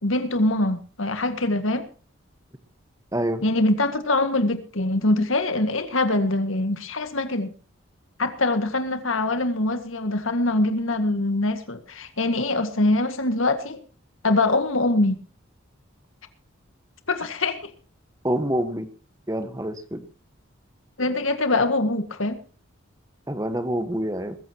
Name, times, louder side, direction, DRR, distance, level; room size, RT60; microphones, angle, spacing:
voice 1, 0.0-1.9 3.4-7.5 8.2-13.8 14.2-15.2 17.1-17.7 21.0-22.4, left 2 dB, 75° left, 1.9 m, -23 dB
voice 2, 3.1-3.4 18.2-18.9 19.3-20.0 23.3-24.4, right 1 dB, 15° right, 1.3 m, -26 dB
21.5 x 14.5 x 3.0 m
head